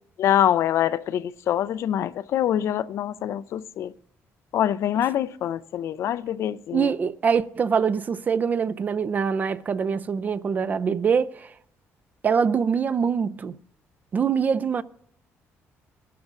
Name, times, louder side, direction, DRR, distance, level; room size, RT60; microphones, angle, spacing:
voice 1, 0.2-3.9 4.5-6.9, left 11 dB, 60° left, 0.4 m, -25 dB
voice 2, 6.7-11.5 12.2-13.6 14.1-14.8, right 6 dB, 30° right, 0.4 m, -24 dB
21.0 x 11.5 x 2.5 m
cardioid pair, 145°, 5 cm